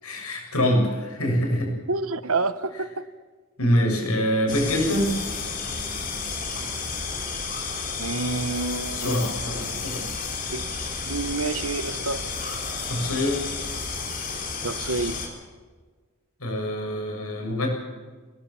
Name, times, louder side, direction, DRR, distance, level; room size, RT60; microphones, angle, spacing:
voice 1, 0.0-1.7 3.6-5.1 8.9-10.1 12.8-13.4 16.4-17.7, equal, 85° left, 1 dB, 7.3 m, -25 dB
voice 2, 1.9-3.0 8.0-9.2 9.7-9.8 10.5-10.6 11.0-12.5 14.6-15.2, right 3 dB, 70° right, 14 dB, 1.1 m, -28 dB
sound 1, 4.5-15.3, left 4 dB, 40° left, 4.0 m, -31 dB
23.0 x 18.5 x 7.3 m, 1.5 s
head